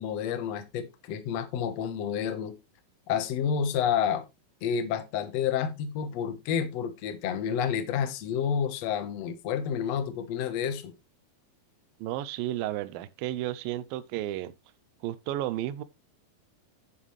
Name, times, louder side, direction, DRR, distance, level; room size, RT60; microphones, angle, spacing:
voice 1, 0.0-2.6 3.1-4.2 4.6-10.9, left 8 dB, 65° left, 1.7 m, -29 dB
voice 2, 12.0-14.5 15.0-15.8, right 14 dB, 80° right, 2.1 m, -32 dB
10.5 x 7.2 x 3.2 m
omnidirectional pair, 4.6 m